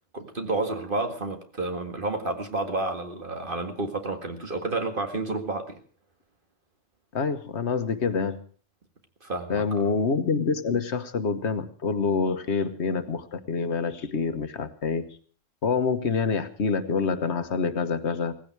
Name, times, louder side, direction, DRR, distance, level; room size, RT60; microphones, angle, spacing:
voice 1, 0.1-5.8 9.2-9.8, right 2 dB, 45° right, 5 dB, 2.1 m, -30 dB
voice 2, 7.1-8.4 9.5-15.2 15.6-18.3, left 5 dB, 70° left, 10 dB, 1.4 m, -26 dB
18.0 x 15.5 x 4.7 m, 0.43 s
omnidirectional pair, 1.2 m